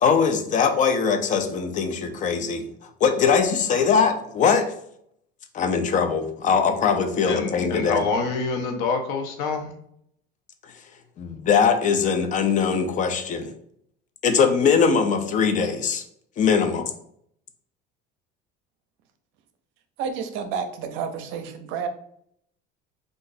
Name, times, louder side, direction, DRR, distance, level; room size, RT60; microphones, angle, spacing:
voice 1, 0.0-4.7 5.5-8.1 11.2-13.5 14.2-16.0 16.4-16.9, left 6 dB, 35° left, 7 dB, 0.5 m, -21 dB
voice 2, 7.2-9.7, left 4 dB, 80° left, 4 dB, 0.8 m, -26 dB
voice 3, 20.0-21.9, right 6 dB, 70° right, 7 dB, 0.6 m, -30 dB
3.8 x 2.6 x 2.6 m, 0.70 s
cardioid pair, 120°, 21 cm